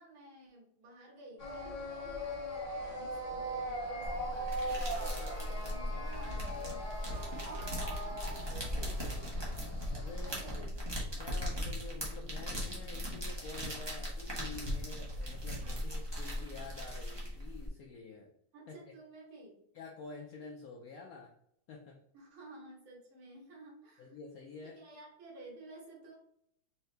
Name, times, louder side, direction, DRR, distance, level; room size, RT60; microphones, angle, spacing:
voice 1, 0.0-2.4 2.7-5.1 5.4-9.4 10.2-11.0 15.6-15.8 18.5-19.6 22.1-24.2 24.6-26.2, right 1 dB, 80° right, -3 dB, 2.2 m, -54 dB
sound 1, 1.4-10.6, right 1 dB, 35° left, 0.6 m, -40 dB
sound 2, 4.0-17.7, equal, 20° right, 0.7 m, -38 dB
voice 2, 9.9-10.6 11.2-18.3 18.7-18.8 19.7-21.3 21.7-22.0 24.0-24.8, left 4 dB, 80° left, 1 dB, 0.8 m, -48 dB
4.6 x 2.8 x 3.3 m, 0.72 s
omnidirectional pair, 2.2 m